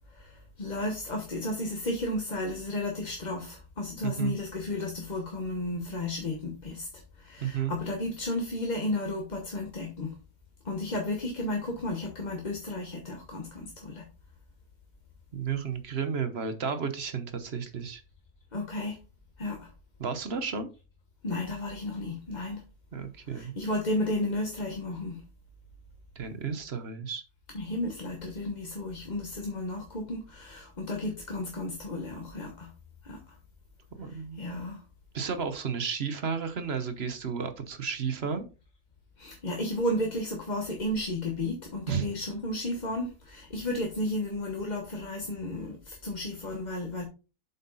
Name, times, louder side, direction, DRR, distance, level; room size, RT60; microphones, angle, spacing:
voice 1, 0.1-10.2 10.6-14.1 18.5-19.0 19.4-19.7 21.2-22.6 23.2-25.2 27.5-32.7 33.0-33.4 34.0-34.8 39.2-47.0, left 1 dB, 30° left, 2 dB, 1.1 m, -33 dB
voice 2, 4.0-4.3 7.4-7.7 15.3-18.0 20.0-20.7 22.9-23.5 26.2-27.2 34.0-34.4 35.1-38.4 41.9-42.1, right 6 dB, 45° right, 10 dB, 1.1 m, -32 dB
7.7 x 5.5 x 4.0 m, 0.32 s
omnidirectional pair, 1.7 m